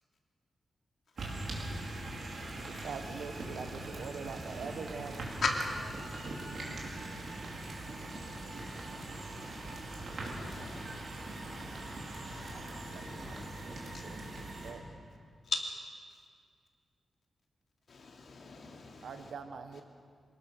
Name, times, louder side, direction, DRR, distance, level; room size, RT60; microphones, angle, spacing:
sound 1, 1.2-14.7, right 2 dB, 60° right, 4.7 m, -41 dB
voice 1, 2.6-5.4 7.9-8.2 12.5-15.2 18.8-19.8, right 5 dB, 85° right, 1.4 m, -45 dB
voice 2, 5.7-7.7, right 1 dB, 40° right, 5.5 m, -59 dB
voice 3, 10.3-11.0 12.3-13.5 13.8-14.0 15.4-15.6 17.9-19.1, left 4 dB, 60° left, 3.1 m, -39 dB
27.0 x 18.5 x 6.7 m
wide cardioid pair, 130°, 0 cm